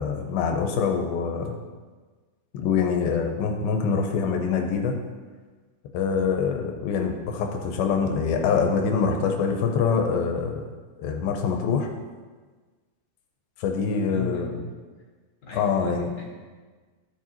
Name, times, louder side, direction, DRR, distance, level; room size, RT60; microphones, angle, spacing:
voice 1, 0.0-1.5 2.5-5.0 5.9-10.6 11.0-11.9 13.6-14.6 15.5-16.1, left 5 dB, 90° left, 3 dB, 2.5 m, -25 dB
voice 2, 13.8-14.7 15.4-16.2, left 2 dB, 55° left, -5 dB, 2.8 m, -37 dB
13.0 x 4.8 x 2.9 m, 1.4 s
omnidirectional pair, 4.2 m